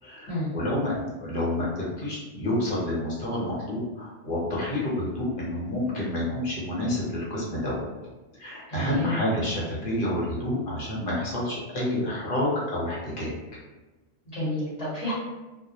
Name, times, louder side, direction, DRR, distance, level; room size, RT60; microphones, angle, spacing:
voice 1, 0.0-7.9 8.3-13.3, left 1 dB, 50° left, -5 dB, 0.9 m, -29 dB
voice 2, 8.7-9.2 14.2-15.1, left 1 dB, 30° left, -12 dB, 1.1 m, -30 dB
2.2 x 2.1 x 2.8 m, 1.2 s
omnidirectional pair, 1.3 m